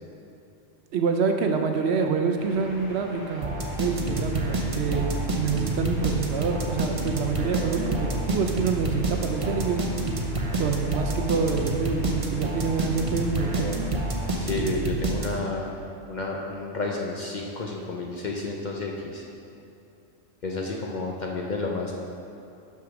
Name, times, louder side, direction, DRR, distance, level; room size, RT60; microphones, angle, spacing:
voice 1, 0.9-9.8 10.5-13.7, right 5 dB, 65° right, 4 dB, 0.8 m, -27 dB
sound 1, 2.3-14.6, left 1 dB, 85° left, 2.3 m, -43 dB
sound 2, 3.4-15.6, right 2 dB, 35° right, 0.6 m, -28 dB
voice 2, 14.4-15.7 16.1-19.2 20.4-21.9, left 3 dB, 50° left, -1 dB, 0.6 m, -31 dB
6.0 x 5.7 x 6.0 m, 2.8 s
omnidirectional pair, 1.3 m